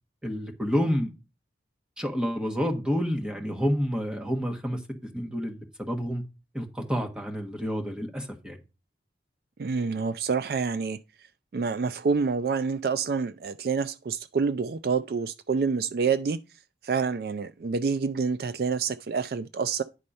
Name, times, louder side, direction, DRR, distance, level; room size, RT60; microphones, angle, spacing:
voice 1, 0.2-1.1 2.0-6.2 6.5-8.6, equal, 5° right, 1.3 m, -29 dB
voice 2, 9.6-11.0 11.5-16.4 16.8-19.8, right 5 dB, 55° right, 0.3 m, -27 dB
10.0 x 4.3 x 5.4 m
head